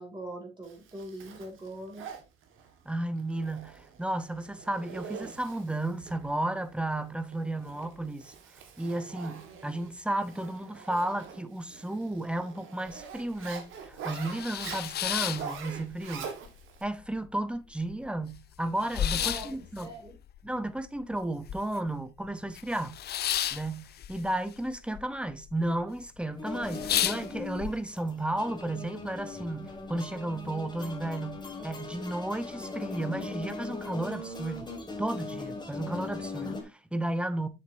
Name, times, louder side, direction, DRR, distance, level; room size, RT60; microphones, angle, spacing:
voice 1, 0.0-2.1 19.1-20.2, right 1 dB, 20° right, 2.6 m, -42 dB
Zipper (clothing), 0.6-16.8, right 6 dB, 85° right, 1.7 m, -45 dB
voice 2, 2.8-8.3 8.8-16.3 16.8-19.9 20.4-23.0 23.5-34.7 35.0-37.5, right 1 dB, 5° right, 0.8 m, -33 dB
sound 1, 12.9-13.0 13.4-13.5 13.9-16.1 16.5-17.2 17.5-17.6 17.8-22.0 22.2-25.0 25.3-25.8 26.2-26.3 26.6-27.7, left 11 dB, 55° left, 0.5 m, -33 dB
sound 2, 26.3-36.6, left 3 dB, 20° left, 1.9 m, -39 dB
7.4 x 6.7 x 2.7 m
cardioid pair, 90°, 20 cm